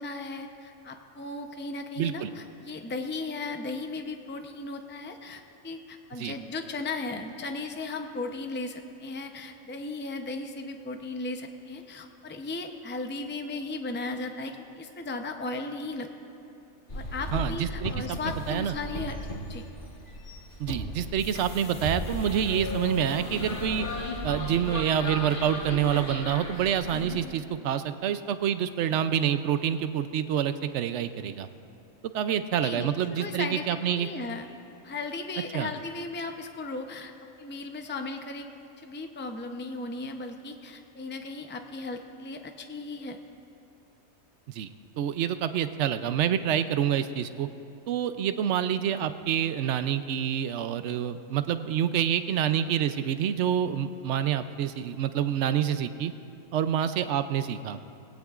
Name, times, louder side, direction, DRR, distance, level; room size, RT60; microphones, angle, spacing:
voice 1, 0.0-16.1 16.9-19.2 19.4-19.6 32.6-33.6 34.0-34.5 34.8-37.1 37.4-38.5 38.8-43.2, left 3 dB, 15° left, 5 dB, 0.4 m, -36 dB
voice 2, 2.0-2.3 6.2-6.3 17.3-18.2 18.5-18.8 20.6-23.9 24.2-31.5 32.1-34.1 35.5-35.7 44.5-44.7 45.0-47.5 47.9-56.1 56.5-57.8, right 9 dB, 65° right, 11 dB, 0.8 m, -27 dB
sound 1, 16.9-27.2, left 1 dB, 40° left, 1.5 m, -36 dB
19.5 x 17.0 x 2.4 m, 2.8 s
omnidirectional pair, 1.4 m